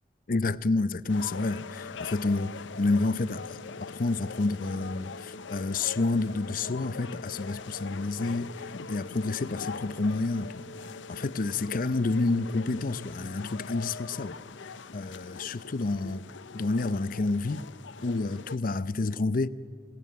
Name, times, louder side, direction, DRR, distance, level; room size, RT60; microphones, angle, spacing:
voice 1, 0.3-3.4 3.9-8.5 8.9-10.7 11.1-14.4 14.9-16.2 16.5-17.6 18.0-19.5, left 3 dB, 45° left, 0.5 m, -29 dB
sound 1, 1.1-18.6, left 4 dB, 85° left, 0.7 m, -42 dB
26.0 x 18.0 x 9.3 m
head